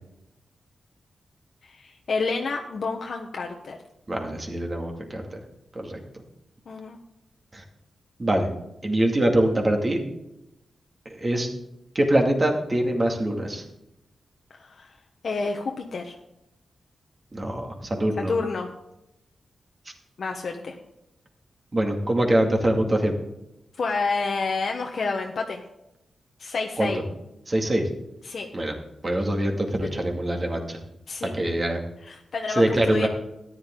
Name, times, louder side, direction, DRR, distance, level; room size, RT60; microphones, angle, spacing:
voice 1, 1.6-3.8 6.7-7.0 14.5-14.9 15.2-16.2 18.2-18.7 20.2-20.8 23.8-25.6 26.4-27.0 28.2-28.5 31.1-31.4 32.0-33.1, left 4 dB, 55° left, 2 dB, 1.1 m, -29 dB
voice 2, 4.1-5.4 5.7-6.0 7.5-7.6 8.2-8.5 8.8-10.0 11.2-11.5 11.9-13.6 17.3-18.3 21.7-23.2 26.8-26.9 27.5-27.9 28.5-28.7 29.0-30.8 31.2-31.8 32.6-33.1, right 1 dB, 25° right, 2 dB, 2.2 m, -24 dB
13.5 x 11.0 x 3.8 m, 0.87 s
wide cardioid pair, 135°, 0 cm